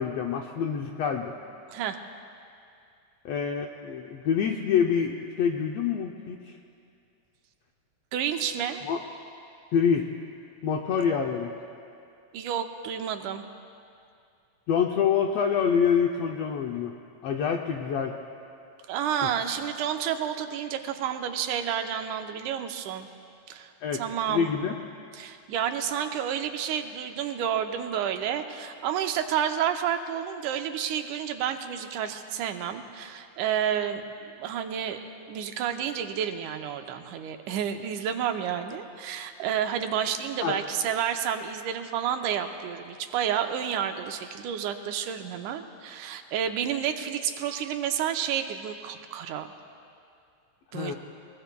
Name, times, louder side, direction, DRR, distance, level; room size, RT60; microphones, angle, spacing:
voice 1, 0.0-1.3 3.2-6.5 8.8-9.0 9.7-10.1 10.6-11.5 14.7-16.9 17.2-18.1 23.8-24.0 24.3-24.7 40.4-40.6 50.7-50.9, left 7 dB, 80° left, 2 dB, 1.4 m, -26 dB
voice 2, 8.1-8.8 12.3-13.4 18.9-23.1 23.5-24.5 25.1-35.0 35.3-49.5 50.7-51.0, right 9 dB, 90° right, 6 dB, 2.2 m, -30 dB
22.5 x 21.0 x 2.2 m, 2.5 s
omnidirectional pair, 3.5 m